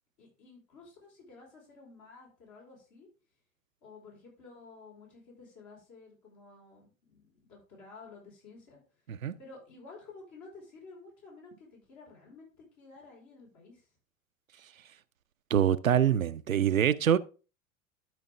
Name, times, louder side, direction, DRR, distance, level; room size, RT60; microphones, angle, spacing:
voice 1, 0.2-3.1 3.8-8.8 9.4-13.9, left 3 dB, 50° left, 5.0 m, -52 dB
voice 2, 15.5-17.2, right 9 dB, 85° right, 0.5 m, -25 dB
12.5 x 5.2 x 3.5 m
figure-of-eight pair, 75°, 39 cm